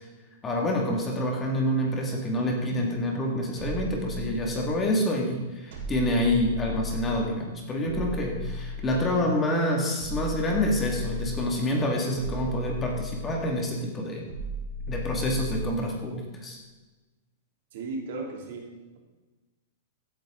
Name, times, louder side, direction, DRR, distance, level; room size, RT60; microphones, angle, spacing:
voice 1, 0.4-14.2 14.9-16.6, left 1 dB, 15° left, 0 dB, 2.1 m, -27 dB
sound 1, 3.6-4.9 5.7-7.3 7.8-9.3 10.0-11.6 12.1-13.5 14.3-15.9, left 2 dB, 75° right, 3.6 m, -35 dB
voice 2, 17.7-19.0, right 3 dB, 60° right, 1 dB, 2.8 m, -36 dB
16.0 x 9.1 x 3.8 m, 1.2 s
supercardioid pair, 155°, 0 cm